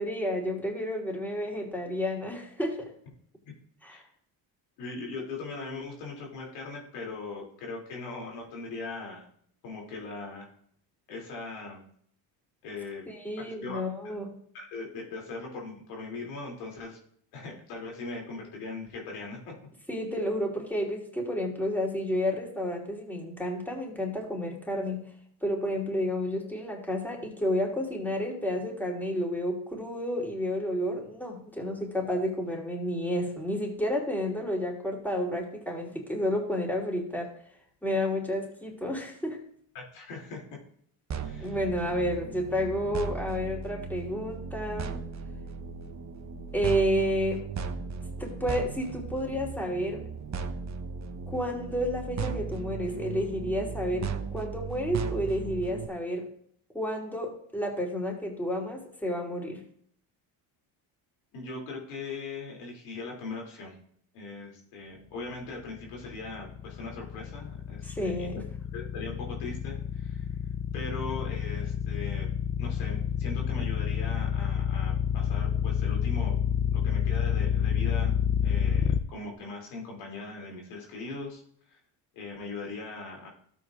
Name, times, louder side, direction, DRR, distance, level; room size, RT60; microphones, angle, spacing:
voice 1, 0.0-2.9 3.8-4.0 13.1-14.3 19.9-25.0 25.4-37.3 37.8-39.4 41.4-45.0 46.5-47.4 48.2-50.0 51.3-56.3 56.7-59.6 67.8-68.4, equal, 5° left, -1 dB, 3.0 m, -31 dB
voice 2, 4.8-9.3 9.6-10.5 11.1-11.8 12.6-13.0 13.4-14.1 14.5-17.0 17.3-19.5 39.7-40.4 41.2-41.6 61.3-63.8 64.1-68.3 68.7-70.4 70.7-72.3 72.6-76.3 76.7-78.1 78.4-81.4 81.7-81.8 82.1-83.3, left 3 dB, 85° left, -1 dB, 2.8 m, -40 dB
sound 1, 41.1-55.9, right 5 dB, 35° right, 0.9 m, -36 dB
sound 2, 65.7-79.0, left 9 dB, 25° left, 0.6 m, -28 dB
13.5 x 8.2 x 2.4 m, 0.64 s
supercardioid pair, 70°, 48 cm